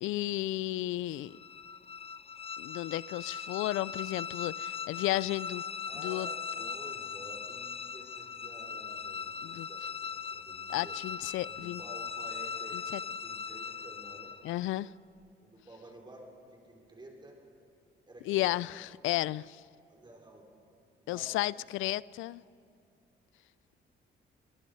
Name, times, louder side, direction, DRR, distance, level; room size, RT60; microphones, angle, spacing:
voice 1, 0.0-1.3 2.6-5.6 6.0-6.3 9.4-9.7 10.7-11.8 12.7-13.0 14.4-14.9 18.3-19.6 21.1-22.4, left 16 dB, 85° left, 0.4 m, -33 dB
sound 1, 1.2-14.6, left 6 dB, 30° left, 0.9 m, -40 dB
voice 2, 5.8-11.0 11.5-12.8 13.1-14.3 15.4-17.4 18.1-18.8 19.9-20.5 21.0-21.6, right 1 dB, 20° right, 5.1 m, -51 dB
24.0 x 20.0 x 5.5 m
cardioid pair, 90°, 20 cm